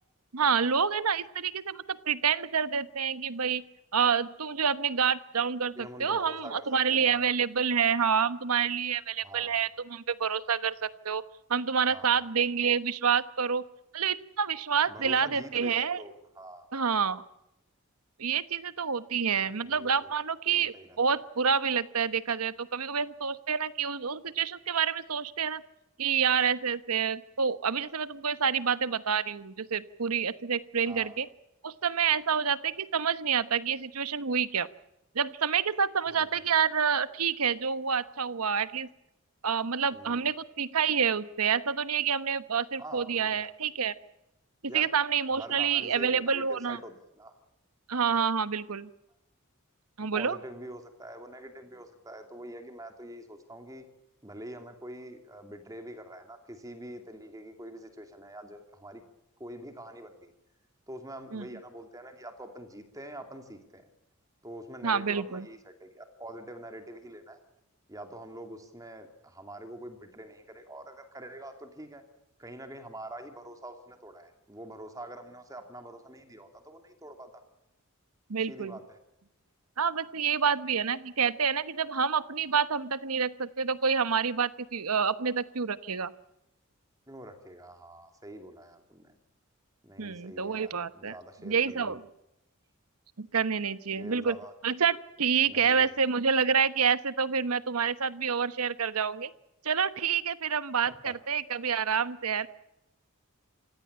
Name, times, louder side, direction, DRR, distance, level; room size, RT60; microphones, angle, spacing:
voice 1, 0.3-3.6 3.9-11.2 11.5-13.6 13.9-16.0 16.7-17.2 18.2-25.6 26.0-31.3 31.6-34.7 35.1-38.9 39.4-44.0 44.7-46.8 47.9-48.9 50.0-50.4 61.3-61.4 64.8-65.5 78.3-78.7 79.8-86.1 90.0-91.1 91.4-92.0 93.2-94.4 94.6-99.3 99.6-102.5, right 6 dB, 85° right, 14 dB, 1.1 m, -28 dB
voice 2, 5.7-7.3 9.2-9.6 11.9-12.3 14.9-16.7 19.6-20.1 20.5-21.2 30.9-31.2 36.1-36.4 39.9-40.3 42.8-43.5 44.7-44.9 45.4-47.3 50.0-53.9 54.2-59.0 59.4-60.3 60.9-63.9 64.4-67.4 67.9-72.0 72.4-77.4 78.5-79.0 87.1-89.2 89.8-92.0 94.0-94.5 95.5-95.9 100.9-101.1, right 1 dB, 15° right, 6 dB, 2.6 m, -45 dB
27.5 x 16.5 x 8.7 m, 0.91 s
head